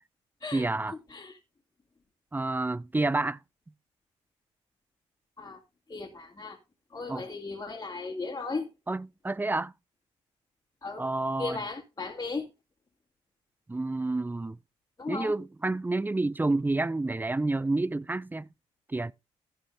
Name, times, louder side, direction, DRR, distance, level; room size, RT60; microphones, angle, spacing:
voice 1, 0.5-0.9 2.3-3.4 7.1-7.2 8.9-9.7 11.0-11.6 13.7-14.6 15.1-18.5 18.9-19.1, right 2 dB, 15° right, 0.5 m, -29 dB
voice 2, 5.9-6.6 6.9-8.7 10.8-11.0 11.4-12.5 15.0-15.3, left 3 dB, 25° left, 2.4 m, -36 dB
16.0 x 5.4 x 3.3 m
hypercardioid pair, 50°, 14 cm